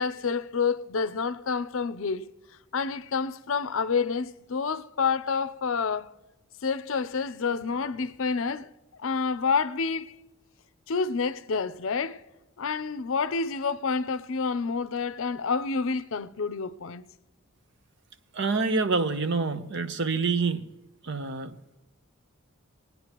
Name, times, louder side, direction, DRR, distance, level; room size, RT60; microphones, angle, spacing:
voice 1, 0.0-2.3 2.7-6.1 6.6-8.7 9.0-10.1 10.9-12.2 12.6-17.0, left 5 dB, 65° left, 0.6 m, -28 dB
voice 2, 18.3-20.6 21.0-21.8, right 4 dB, 55° right, 0.8 m, -27 dB
22.5 x 9.3 x 3.0 m
head